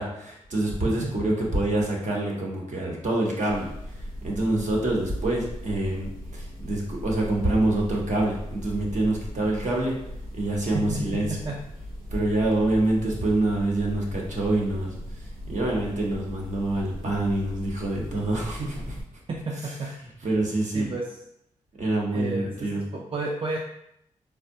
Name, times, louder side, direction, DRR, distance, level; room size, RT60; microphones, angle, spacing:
voice 1, 0.0-3.7 4.2-6.1 6.3-10.0 10.3-11.4 12.1-19.0 19.6-19.7 20.2-20.9 21.8-22.8, right 1 dB, 60° right, -2 dB, 0.9 m, -26 dB
sound 1, 3.5-19.0, equal, 85° right, 0.7 m, -39 dB
voice 2, 10.7-11.6 19.3-19.9 20.2-20.3 20.7-21.1 22.1-23.6, right 3 dB, 40° right, -2 dB, 0.4 m, -32 dB
3.4 x 2.1 x 2.6 m, 0.76 s
supercardioid pair, 50°, 14 cm